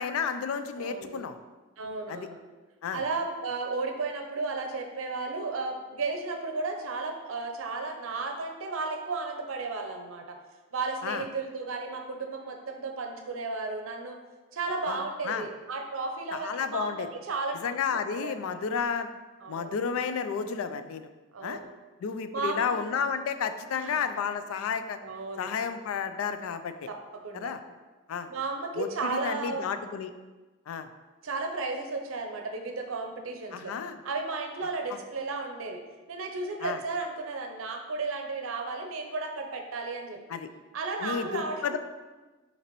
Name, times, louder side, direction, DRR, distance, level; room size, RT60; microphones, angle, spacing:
voice 1, 0.0-1.4 2.1-2.3 2.8-3.0 11.0-11.2 14.9-15.0 15.2-15.5 16.3-17.1 17.6-19.1 19.5-21.1 21.4-21.6 22.0-25.0 25.4-26.7 27.3-27.6 28.1-28.3 28.7-30.1 30.7-30.9 33.5-34.0 36.6-36.8 40.3-40.5 41.0-41.8, left 6 dB, 90° left, 10 dB, 0.3 m, -31 dB
voice 2, 0.8-1.2 1.8-2.4 2.9-10.4 10.7-14.2 14.5-17.6 17.9-18.3 19.4-19.8 21.3-21.7 22.3-22.7 23.8-24.0 25.0-25.5 26.9-27.5 28.3-29.7 31.2-33.7 34.0-35.8 36.1-40.2 40.7-41.6, right 3 dB, 80° right, 4 dB, 0.6 m, -34 dB
5.8 x 2.9 x 3.0 m, 1.2 s
head